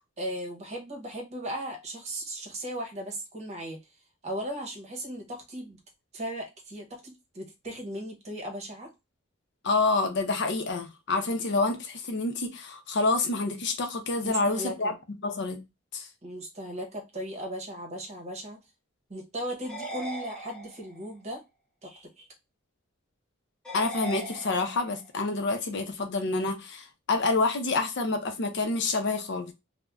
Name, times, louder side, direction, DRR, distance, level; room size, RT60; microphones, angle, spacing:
voice 1, 0.2-3.8 4.2-5.8 6.1-8.9 14.2-15.0 16.2-18.6 19.1-21.4 21.8-22.3, right 1 dB, 35° right, 0.9 m, -37 dB
voice 2, 9.6-14.9 15.2-15.6 15.9-16.1 23.7-29.5, left 3 dB, 60° left, 0.6 m, -28 dB
sound 1, 19.6-21.1 23.6-25.1, right 1 dB, 5° left, 0.6 m, -39 dB
2.5 x 2.1 x 3.3 m
head